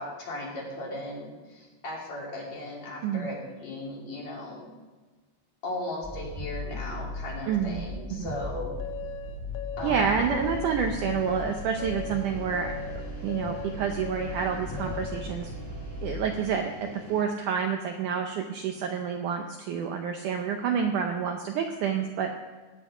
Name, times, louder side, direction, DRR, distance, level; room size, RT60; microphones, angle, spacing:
voice 1, 0.0-4.7 5.6-8.7 9.8-10.2, left 1 dB, 50° left, -3 dB, 3.9 m, -37 dB
sound 1, 6.0-16.3, equal, 10° left, 2.6 m, -38 dB
voice 2, 7.5-7.8 8.1-8.3 9.8-12.7 13.2-15.5 16.0-22.3, right 7 dB, 75° right, 4 dB, 1.9 m, -28 dB
sound 2, 8.8-15.4, left 9 dB, 75° left, 2.5 m, -39 dB
sound 3, 9.8-17.2, left 2 dB, 10° right, 1.1 m, -45 dB
17.5 x 8.9 x 4.9 m, 1.3 s
omnidirectional pair, 4.4 m